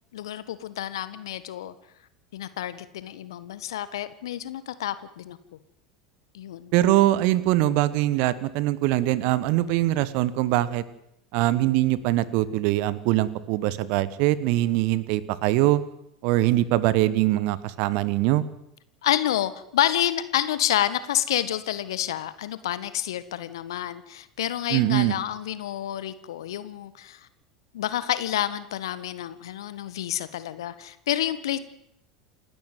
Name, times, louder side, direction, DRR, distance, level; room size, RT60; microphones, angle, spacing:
voice 1, 0.1-1.7 2.3-5.4 6.3-6.7 19.0-27.3 27.7-31.6, left 12 dB, 70° left, 14 dB, 1.5 m, -29 dB
voice 2, 6.7-10.8 11.3-15.8 16.2-18.4 24.7-25.1, right 15 dB, 55° right, 18 dB, 1.5 m, -22 dB
28.5 x 12.5 x 9.4 m, 0.80 s
figure-of-eight pair, 75°, 3 cm